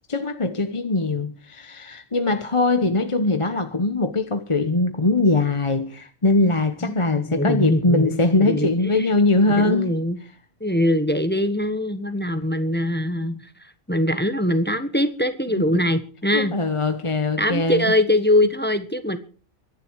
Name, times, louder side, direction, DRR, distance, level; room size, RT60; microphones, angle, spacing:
voice 1, 0.1-9.9 15.5-15.6 16.3-17.9, left 2 dB, 25° left, 1.0 m, -21 dB
voice 2, 6.8-8.7 9.0-9.1 9.5-10.2 10.6-16.5 17.4-19.2, left 1 dB, 10° left, 1.2 m, -22 dB
24.0 x 11.0 x 4.7 m
omnidirectional pair, 1.4 m